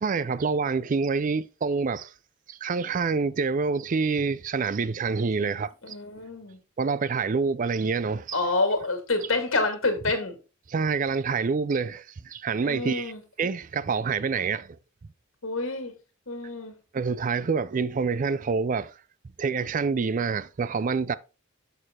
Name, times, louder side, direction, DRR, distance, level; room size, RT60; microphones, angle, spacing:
voice 1, 0.0-2.1 2.5-6.0 6.8-8.4 10.7-13.1 13.4-14.8 16.9-18.9 19.4-21.2, right 5 dB, 40° right, 0.4 m, -27 dB
voice 2, 5.4-6.6 8.3-10.4 12.6-13.2 15.4-15.9 16.3-16.7, left 3 dB, 90° left, 2.2 m, -28 dB
6.7 x 6.5 x 3.6 m
head